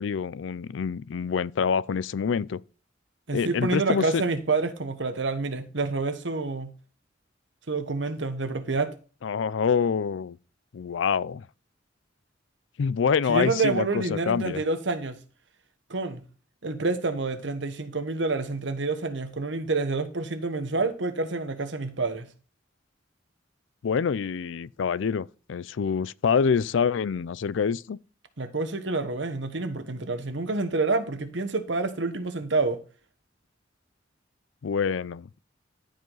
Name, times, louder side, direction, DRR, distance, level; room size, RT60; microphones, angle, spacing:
voice 1, 0.0-2.6 3.3-4.2 9.2-10.4 10.7-11.5 12.8-14.6 23.8-28.0 34.6-35.3, left 6 dB, 80° left, 0.4 m, -26 dB
voice 2, 3.3-6.7 7.7-8.9 13.3-15.2 15.9-16.2 16.6-22.3 28.4-32.8, right 3 dB, 70° right, 1.2 m, -28 dB
14.0 x 5.1 x 3.9 m
head